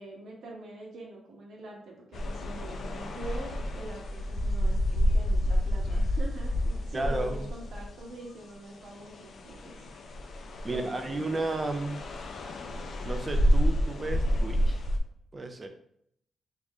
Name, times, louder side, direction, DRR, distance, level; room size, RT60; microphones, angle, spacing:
voice 1, 0.0-9.8 10.7-11.4, right 2 dB, 70° right, -1 dB, 0.9 m, -44 dB
sound 1, 2.1-8.3 8.8-15.0, equal, 60° left, 0.4 m, -29 dB
voice 2, 6.9-7.5 10.6-12.1 13.0-14.8 15.3-15.7, right 2 dB, 25° right, 6 dB, 0.4 m, -33 dB
3.0 x 2.5 x 3.5 m, 0.73 s
cardioid pair, 115°, 0 cm